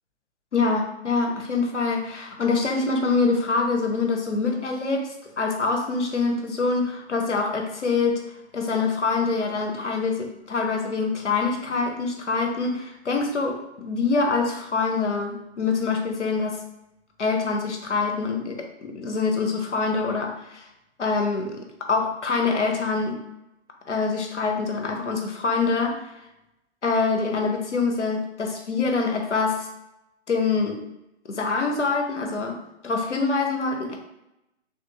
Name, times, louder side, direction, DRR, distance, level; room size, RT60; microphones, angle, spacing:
voice 1, 0.5-8.2 8.5-13.6 13.8-16.6 17.2-20.7 21.0-23.2 23.9-26.0 26.8-29.7 30.3-30.8 31.3-32.6 32.8-34.0, left 4 dB, 85° left, 2 dB, 0.7 m, -25 dB
3.4 x 2.5 x 2.7 m, 0.88 s
figure-of-eight pair, 125°, 35 cm